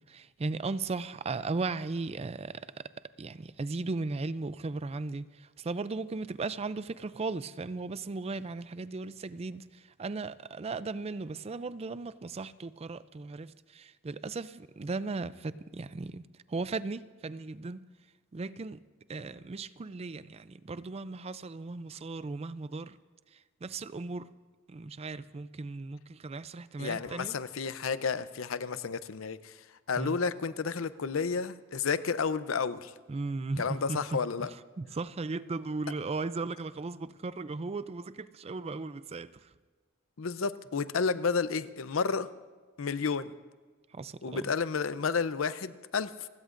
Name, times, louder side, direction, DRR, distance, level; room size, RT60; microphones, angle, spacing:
voice 1, 0.1-2.6 3.2-16.2 16.5-17.8 18.3-18.8 19.1-23.0 23.6-24.3 24.7-27.3 30.0-30.2 33.1-34.5 34.8-39.3 43.9-44.4, right 3 dB, 30° right, 0.4 m, -36 dB
voice 2, 26.8-29.6 29.9-32.9 33.6-34.5 40.2-42.3 42.8-43.3 44.2-46.3, left 5 dB, 85° left, 0.6 m, -31 dB
29.5 x 16.5 x 2.6 m
head